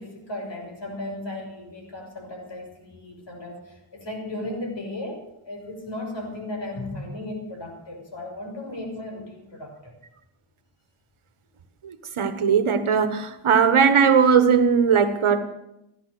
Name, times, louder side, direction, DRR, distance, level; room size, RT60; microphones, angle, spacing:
voice 1, 0.0-9.9, left 1 dB, 55° left, 6.2 m, -35 dB
voice 2, 11.8-15.4, right 6 dB, 75° right, 1.4 m, -19 dB
16.0 x 11.5 x 6.8 m
cardioid pair, 45°, 50 cm